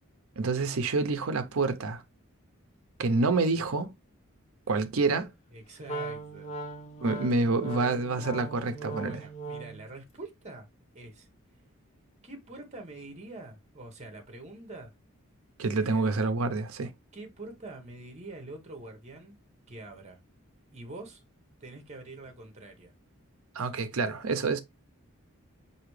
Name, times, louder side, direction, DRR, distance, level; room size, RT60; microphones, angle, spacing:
voice 1, 0.4-2.0 3.0-3.9 4.7-5.3 7.0-9.2 15.6-16.9 23.5-24.6, right 3 dB, 75° right, 0.6 m, -27 dB
voice 2, 5.5-6.5 9.0-10.7 10.9-11.3 12.2-14.9 15.7-16.0 17.1-19.4 19.7-20.2 20.7-21.2 21.6-22.9, right 2 dB, 35° right, 1.1 m, -45 dB
Wind instrument woodwind instrument, 5.8-9.9, right 3 dB, 30° left, 0.9 m, -39 dB
4.9 x 2.7 x 3.1 m
head